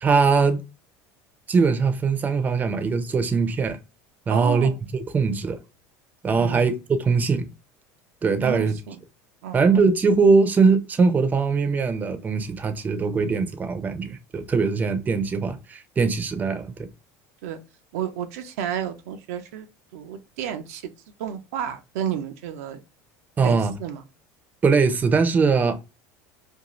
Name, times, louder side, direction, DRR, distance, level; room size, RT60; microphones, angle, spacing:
voice 1, 0.0-0.6 1.5-3.8 4.3-4.7 5.1-5.6 6.2-7.5 8.2-8.8 9.5-16.9 23.4-23.7 24.6-25.9, right 4 dB, 20° right, 0.5 m, -21 dB
voice 2, 4.3-4.8 6.3-6.6 8.4-9.0 9.4-9.7 17.4-17.6 17.9-19.7 19.9-20.8 21.2-22.8 23.4-24.0, right 9 dB, 85° right, 0.5 m, -31 dB
2.5 x 2.3 x 2.9 m
supercardioid pair, 115°, 8 cm